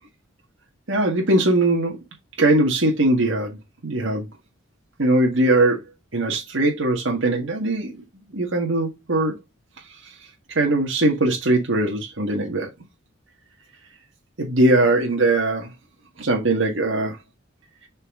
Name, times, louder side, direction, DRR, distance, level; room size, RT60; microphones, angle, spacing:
voice 1, 0.9-2.0 2.4-4.3 5.0-5.8 6.1-7.9 8.3-9.4 10.0-10.1 10.5-12.7 14.4-15.7 16.2-17.2, right 2 dB, 70° right, 1.7 m, -20 dB
7.2 x 4.5 x 3.6 m
head